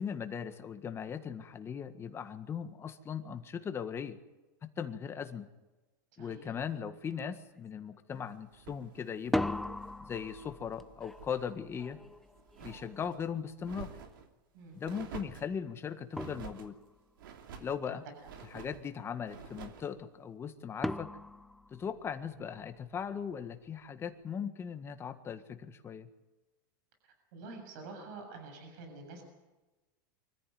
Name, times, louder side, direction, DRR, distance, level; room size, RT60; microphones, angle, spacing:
voice 1, 0.0-4.2 4.6-5.5 6.2-9.7 10.0-12.0 12.6-13.9 14.7-16.8 17.6-18.0 18.5-21.1 21.7-26.1, left 7 dB, 20° left, 8 dB, 1.7 m, -39 dB
voice 2, 6.2-6.5 14.5-14.8 17.9-18.0 27.3-29.2, right 3 dB, 65° right, 4 dB, 7.4 m, -47 dB
sound 1, 6.6-6.7 7.1-7.6 9.1-14.0 15.6-15.7 16.2-17.1 20.8-22.5, left 1 dB, ahead, 0.7 m, -39 dB
sound 2, 8.5-10.6 10.9-11.5 11.8-13.2 13.6-14.3 14.8-15.5 16.1-16.7 17.2-17.8 18.2-18.8 19.2-19.9, right 7 dB, 80° right, 2.8 m, -49 dB
24.5 x 14.5 x 9.4 m, 1.1 s
supercardioid pair, 130°, 11 cm